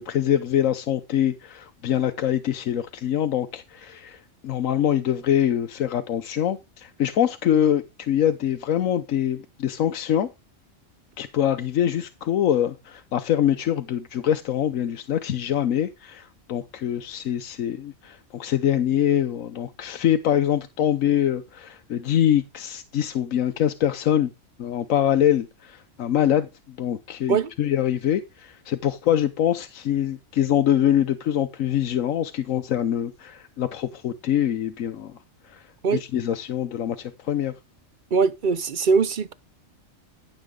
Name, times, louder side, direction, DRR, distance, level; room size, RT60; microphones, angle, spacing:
voice 1, 0.0-10.3 11.2-24.3 24.6-35.2 35.4-37.5, left 10 dB, 75° left, 1.2 m, -24 dB
voice 2, 38.1-39.3, right 5 dB, 50° right, 0.6 m, -21 dB
14.5 x 7.3 x 3.7 m
omnidirectional pair, 1.4 m